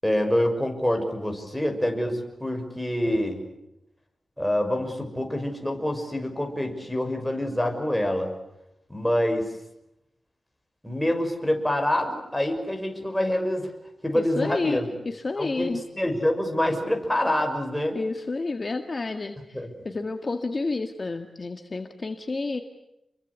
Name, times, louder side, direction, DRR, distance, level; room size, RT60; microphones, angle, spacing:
voice 1, 0.0-3.4 4.4-8.3 8.9-9.5 10.8-13.7 14.0-14.9 15.4-15.7 16.0-18.0 19.5-19.7, left 1 dB, 5° left, 3 dB, 6.1 m, -26 dB
voice 2, 14.1-15.8 17.9-22.6, left 3 dB, 35° left, 6 dB, 1.9 m, -30 dB
29.5 x 23.0 x 8.3 m, 0.85 s
wide cardioid pair, 115°, 0 cm